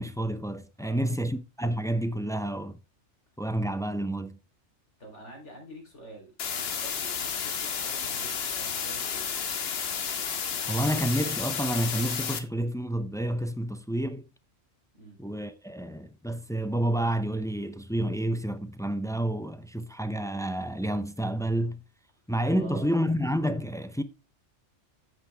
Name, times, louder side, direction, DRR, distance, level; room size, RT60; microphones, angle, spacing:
voice 1, 0.0-2.8 3.4-4.4 10.7-14.3 15.2-21.8 22.3-24.0, right 1 dB, 5° left, 0.4 m, -29 dB
voice 2, 0.8-1.1 5.0-9.4 14.9-15.2 22.5-22.9, right 1 dB, 80° left, 4.0 m, -47 dB
sound 1, 6.4-12.4, left 7 dB, 60° left, 1.2 m, -32 dB
8.9 x 7.5 x 3.4 m
omnidirectional pair, 1.2 m